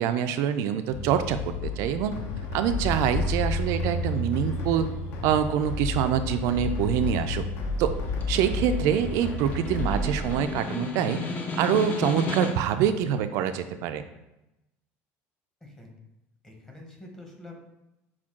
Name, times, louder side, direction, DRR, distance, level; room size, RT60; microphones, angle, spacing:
voice 1, 0.0-2.2 2.5-4.9 5.2-7.4 7.8-7.9 8.3-11.2 11.6-14.0, right 9 dB, 70° right, 10 dB, 0.3 m, -25 dB
sound 1, 0.9-10.3, left 1 dB, 80° left, 1.3 m, -34 dB
sound 2, 1.6-10.3, left 3 dB, 60° left, 0.8 m, -33 dB
Snare drum, 7.9-12.8, left 3 dB, 30° left, 0.5 m, -34 dB
voice 2, 15.6-15.9 16.4-17.5, left 2 dB, 10° left, 0 dB, 0.9 m, -46 dB
5.9 x 2.3 x 3.6 m, 0.93 s
cardioid pair, 140°, 5 cm